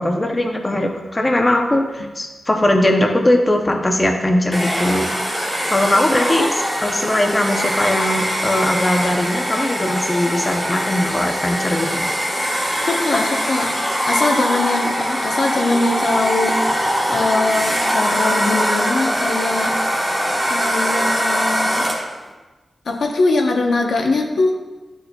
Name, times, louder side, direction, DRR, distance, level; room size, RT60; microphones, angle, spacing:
voice 1, 0.0-5.1 5.7-6.4 6.8-12.1, left 1 dB, 20° left, 3 dB, 0.6 m, -19 dB
Domestic sounds home sounds, 4.5-22.2, equal, ahead, 1.2 m, -22 dB
voice 2, 12.9-13.7 14.1-16.7 17.1-19.8 20.5-21.9 22.9-24.6, left 3 dB, 75° left, 2 dB, 0.8 m, -21 dB
11.0 x 4.5 x 2.3 m, 1.2 s
wide cardioid pair, 135°, 0 cm